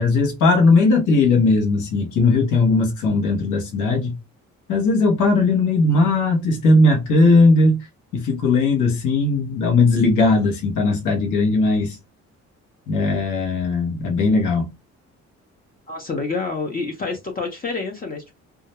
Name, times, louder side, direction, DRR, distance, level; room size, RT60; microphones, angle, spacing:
voice 1, 0.0-4.1 4.7-7.8 8.1-12.0 12.9-14.7, left 3 dB, 85° left, 0.9 m, -18 dB
voice 2, 15.9-18.3, left 4 dB, 30° left, 0.6 m, -28 dB
2.3 x 2.0 x 2.8 m
cardioid pair, 90°, 30 cm